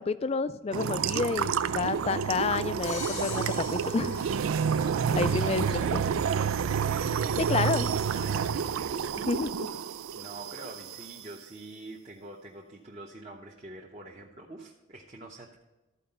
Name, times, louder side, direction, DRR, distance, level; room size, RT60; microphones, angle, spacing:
voice 1, 0.0-4.2 5.2-6.0 7.4-7.9 9.3-9.7, left 4 dB, 30° left, 14 dB, 0.3 m, -29 dB
sound 1, 0.7-11.1, right 7 dB, 90° right, 0.4 m, -29 dB
Crash cymbal, 2.8-5.0, left 4 dB, 90° left, 1.8 m, -41 dB
voice 2, 4.8-8.7 10.1-15.6, right 2 dB, 30° right, -2 dB, 0.9 m, -45 dB
13.0 x 4.8 x 5.4 m, 1.1 s
head